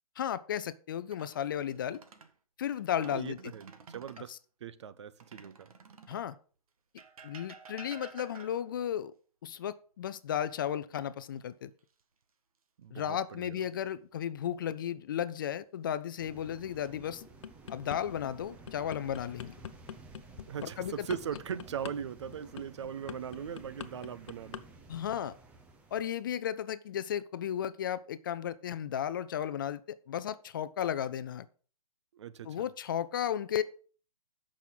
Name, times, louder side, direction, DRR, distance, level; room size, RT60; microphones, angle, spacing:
voice 1, 0.2-2.0 2.6-3.5 4.3-4.4 6.1-6.4 7.2-9.1 9.4-11.7 12.9-17.2 17.7-19.5 20.6-21.1 24.9-25.4 25.9-31.5 32.4-33.6, left 9 dB, 35° left, 0.5 m, -34 dB
sound 1, 1.0-2.3 2.8-4.3 5.2-6.3 7.0-8.8 10.7-11.4 11.8-12.0 14.9-15.5 16.2-16.9, right 5 dB, 70° right, 1.8 m, -52 dB
voice 2, 3.0-4.3 4.6-5.7 12.8-13.6 20.5-24.7 32.1-32.7, right 8 dB, 50° right, 0.7 m, -40 dB
sound 2, 16.2-26.1, right 3 dB, 5° right, 0.6 m, -53 dB
sound 3, 17.2-18.0 18.4-24.6 24.9-25.2, left 8 dB, 50° left, 0.9 m, -44 dB
14.5 x 6.3 x 3.9 m
hypercardioid pair, 160°, 19 cm